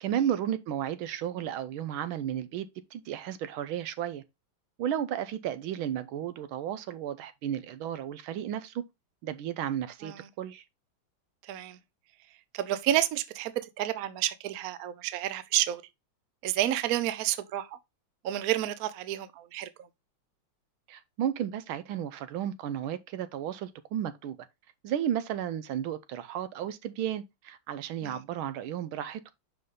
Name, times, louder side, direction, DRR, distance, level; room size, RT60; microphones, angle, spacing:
voice 1, 0.0-4.2 4.8-8.8 9.2-10.6 20.9-24.4 24.8-29.3, right 10 dB, 90° right, 1.5 m, -33 dB
voice 2, 11.4-11.8 12.5-15.8 16.4-17.8 18.2-19.7 28.0-28.2, right 13 dB, 70° right, 0.9 m, -30 dB
5.5 x 5.5 x 3.6 m
omnidirectional pair, 2.2 m